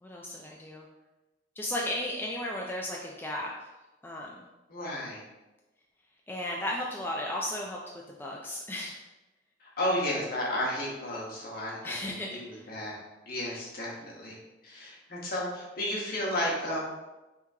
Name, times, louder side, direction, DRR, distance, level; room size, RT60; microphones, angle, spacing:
voice 1, 0.0-0.9 1.6-3.5 4.0-4.5 6.3-7.8 8.2-9.0 11.8-12.7, left 1 dB, 10° left, -2 dB, 0.4 m, -35 dB
voice 2, 4.7-5.2 9.6-13.0 13.3-14.4 14.6-16.8, left 1 dB, 55° left, -4 dB, 1.3 m, -33 dB
5.6 x 3.0 x 2.8 m, 1.0 s
head